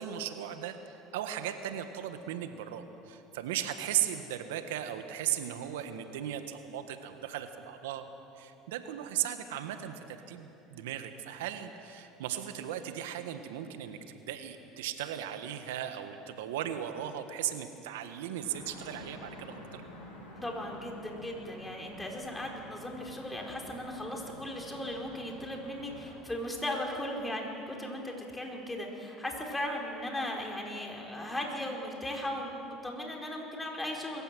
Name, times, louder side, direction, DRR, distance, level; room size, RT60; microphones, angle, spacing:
voice 1, 0.0-8.0 8.4-19.8, right 11 dB, 85° right, 8 dB, 1.4 m, -37 dB
sound 1, 18.4-26.1, left 1 dB, 90° left, 6.9 m, -50 dB
voice 2, 20.4-34.2, left 1 dB, 10° left, 0 dB, 4.7 m, -37 dB
22.0 x 14.5 x 9.1 m, 2.9 s
supercardioid pair, 85°, 0 cm